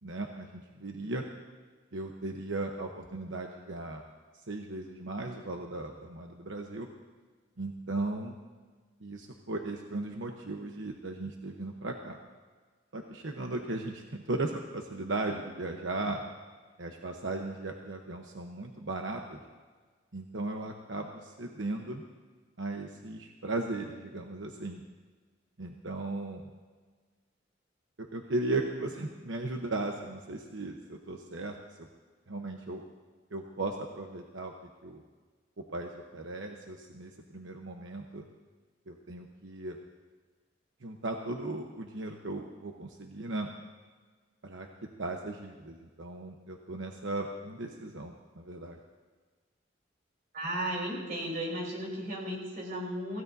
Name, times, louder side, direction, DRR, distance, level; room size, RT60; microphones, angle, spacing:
voice 1, 0.0-1.2 1.9-4.0 4.5-6.9 7.6-8.3 9.0-12.2 12.9-16.2 16.8-19.4 20.1-22.0 22.6-24.8 25.6-26.4 28.0-31.9 32.3-32.8 33.3-34.5 34.8-35.0 35.6-38.2 38.9-39.8 40.8-43.5 44.4-44.7 45.0-48.8, right 2 dB, 85° right, 2 dB, 1.0 m, -37 dB
voice 2, 50.3-53.2, right 1 dB, 50° right, -2 dB, 4.1 m, -35 dB
25.5 x 16.0 x 2.7 m, 1.4 s
head